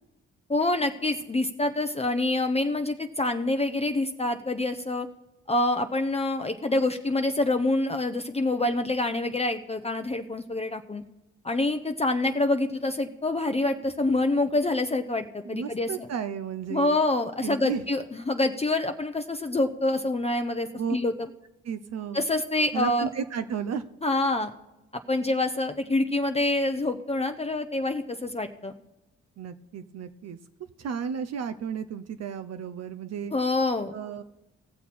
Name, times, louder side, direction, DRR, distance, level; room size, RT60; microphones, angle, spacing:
voice 1, 0.5-5.1 5.5-11.0 11.4-16.1 16.7-21.1 22.1-23.1 24.0-24.5 24.9-28.7 33.3-33.9, left 2 dB, 20° left, 7 dB, 0.7 m, -26 dB
voice 2, 15.4-17.0 17.4-17.8 20.8-21.0 21.6-22.2 22.7-23.8 29.4-30.4 30.8-33.3 33.9-34.2, right 7 dB, 55° right, 9 dB, 0.7 m, -33 dB
17.5 x 6.8 x 4.2 m, 0.98 s
supercardioid pair, 55°, 30 cm